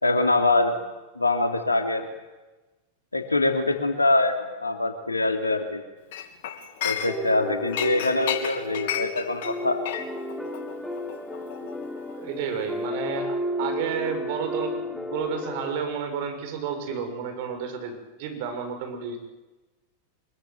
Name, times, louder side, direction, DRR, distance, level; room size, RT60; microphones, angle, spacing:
voice 1, 0.0-0.8 1.2-2.1 3.1-5.8 6.8-9.8, left 2 dB, 80° left, 5 dB, 2.9 m, -24 dB
Chink clink, 6.1-7.4 7.7-12.3 12.6-12.9, left 9 dB, 55° left, 2.9 m, -33 dB
sound 1, 7.1-15.8, left 1 dB, ahead, 3.2 m, -33 dB
voice 2, 12.1-17.9 18.2-19.2, right 6 dB, 50° right, 6 dB, 6.6 m, -31 dB
25.0 x 22.5 x 9.5 m, 1.1 s
figure-of-eight pair, 90°, 0 cm